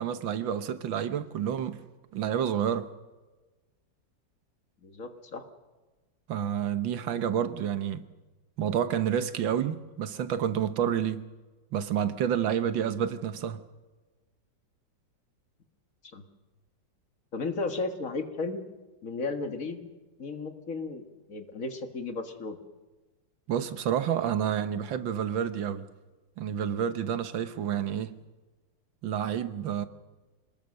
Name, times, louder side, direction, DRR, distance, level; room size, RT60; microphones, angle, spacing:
voice 1, 0.0-1.8 2.1-2.9 6.3-8.1 8.6-11.3 11.7-13.6 23.5-25.9 26.4-28.2 29.0-29.9, right 9 dB, 90° right, 1.8 m, -29 dB
voice 2, 4.8-5.4 16.1-16.3 17.3-18.6 19.0-19.9 20.2-22.6, left 3 dB, 45° left, 2.0 m, -34 dB
26.5 x 19.5 x 6.5 m
omnidirectional pair, 2.0 m